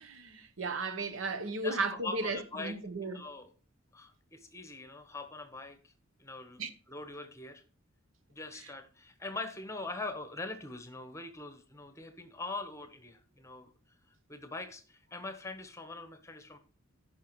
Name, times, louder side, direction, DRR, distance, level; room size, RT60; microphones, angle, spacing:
voice 1, 0.0-3.2 6.6-6.7, right 3 dB, 65° right, 0.9 m, -35 dB
voice 2, 1.6-2.8 3.1-3.5 3.9-5.9 6.2-6.6 6.9-7.6 8.3-13.7 14.3-16.6, left 3 dB, 15° left, 1.0 m, -42 dB
15.0 x 5.7 x 3.1 m
head